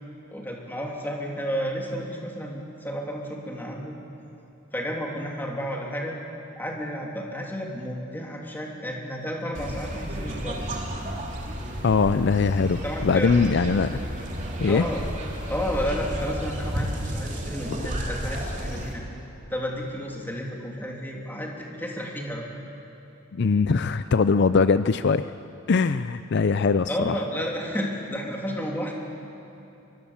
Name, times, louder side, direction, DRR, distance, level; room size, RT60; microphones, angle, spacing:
voice 1, 0.3-4.0 4.7-6.1 6.6-10.6 12.8-13.4 14.7-15.0 15.5-19.0 19.5-22.5 26.9-28.9, equal, 10° left, -1 dB, 3.0 m, -32 dB
sound 1, 9.5-18.9, equal, 35° right, 3.2 m, -32 dB
voice 2, 11.8-14.0 14.6-14.8 23.3-25.3 25.7-27.1, left 4 dB, 55° left, 12 dB, 0.5 m, -21 dB
24.0 x 23.5 x 7.2 m, 2.9 s
head